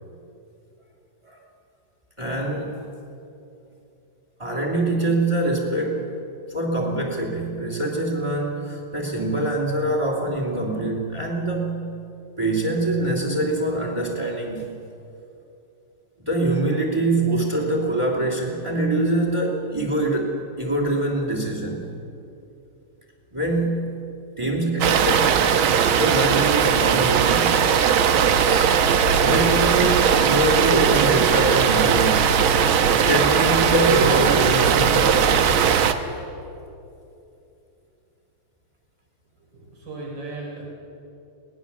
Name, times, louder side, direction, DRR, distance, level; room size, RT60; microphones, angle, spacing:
voice 1, 2.2-2.9 4.4-6.1 6.5-11.9 12.4-14.7 16.2-21.8 23.3-23.9 24.4-25.5 25.9-27.7 29.2-32.5 33.0-35.4, right 1 dB, 15° right, 0 dB, 3.0 m, -24 dB
sound 1, 24.8-35.9, right 8 dB, 75° right, 1.8 m, -19 dB
sound 2, 28.3-35.8, left 1 dB, 50° left, 2.8 m, -32 dB
voice 2, 39.4-40.7, right 3 dB, 55° right, -2 dB, 4.9 m, -36 dB
22.0 x 18.5 x 7.3 m, 2.7 s
omnidirectional pair, 2.3 m